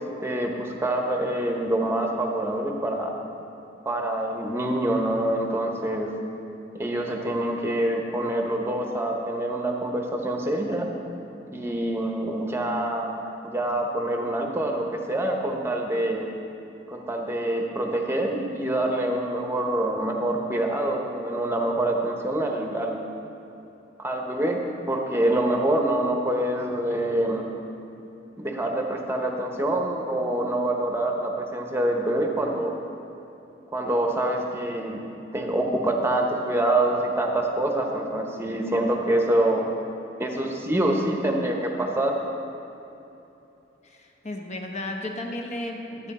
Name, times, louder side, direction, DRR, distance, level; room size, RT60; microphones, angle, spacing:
voice 1, 0.0-3.1 3.8-6.1 6.7-10.9 11.5-16.3 16.9-23.0 24.0-24.6 24.9-27.5 28.4-32.7 33.7-35.0 35.3-39.6 40.2-42.1, right 1 dB, 15° right, 2 dB, 0.9 m, -26 dB
voice 2, 43.8-46.1, left 1 dB, 40° left, 2 dB, 1.1 m, -34 dB
12.5 x 9.4 x 4.1 m, 3.0 s
head